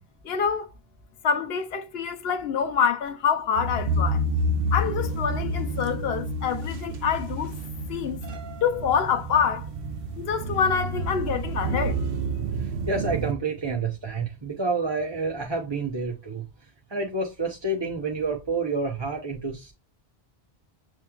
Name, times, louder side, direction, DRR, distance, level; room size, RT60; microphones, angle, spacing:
voice 1, 0.2-0.7 1.2-4.2 4.7-7.5 7.9-8.2 8.6-9.7 10.2-12.0, left 7 dB, 75° left, 1.0 m, -26 dB
sound 1, 3.6-13.3, right 1 dB, 65° right, 0.8 m, -29 dB
voice 2, 12.6-16.5 16.9-19.7, right 3 dB, 30° right, 0.8 m, -29 dB
7.2 x 3.1 x 2.3 m
omnidirectional pair, 1.1 m